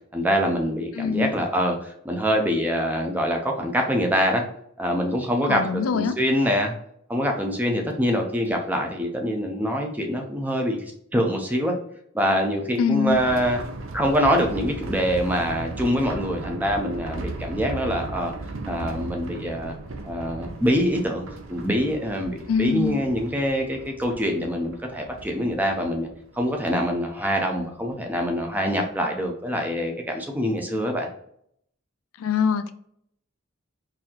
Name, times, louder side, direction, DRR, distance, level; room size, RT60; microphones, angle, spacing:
voice 1, 0.1-4.4 4.8-6.7 7.1-11.8 12.1-13.6 13.9-18.3 18.7-19.7 20.0-26.1 26.3-31.1, equal, 10° right, 2 dB, 0.5 m, -25 dB
voice 2, 1.0-1.3 5.5-6.1 12.8-13.2 22.5-23.0 32.2-32.7, left 6 dB, 80° left, 11 dB, 0.3 m, -23 dB
sound 1, 13.1-28.5 28.8-28.9 29.3-29.4, right 2 dB, 65° right, 0.5 m, -37 dB
4.0 x 2.7 x 2.8 m, 0.69 s
head